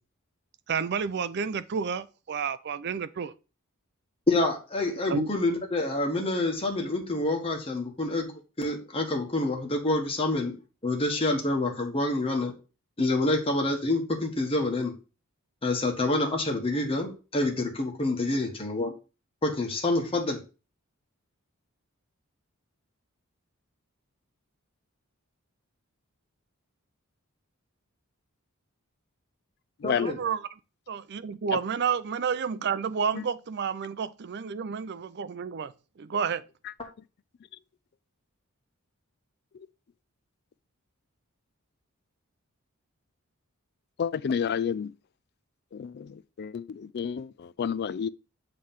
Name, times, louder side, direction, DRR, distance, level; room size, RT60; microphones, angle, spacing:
voice 1, 0.7-3.3 5.1-5.3 29.9-30.5 30.9-36.4, right 6 dB, 50° right, 0.5 m, -30 dB
voice 2, 4.3-10.5 10.8-12.5 13.0-14.9 15.6-18.9 19.4-20.4 29.8-30.2, left 2 dB, 25° left, 1.3 m, -27 dB
voice 3, 44.0-44.9 45.7-48.1, left 7 dB, 50° left, 0.3 m, -30 dB
7.5 x 3.2 x 5.7 m
head